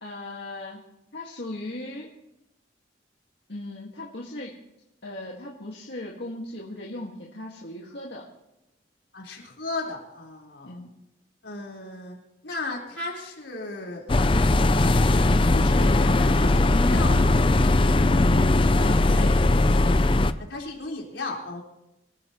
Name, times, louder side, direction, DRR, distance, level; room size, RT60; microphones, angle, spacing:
voice 1, 0.0-0.8 1.1-2.1 3.5-4.5 5.0-8.2 10.6-10.9 18.8-19.6, left 1 dB, 65° left, -3 dB, 1.9 m, -38 dB
voice 2, 9.1-10.8 11.4-12.2 12.4-14.9 15.5-17.5 20.5-21.6, left 2 dB, 85° left, -2 dB, 4.4 m, -35 dB
sound 1, 14.1-20.3, left 2 dB, 25° left, 0.5 m, -19 dB
26.0 x 13.5 x 3.1 m, 0.88 s
head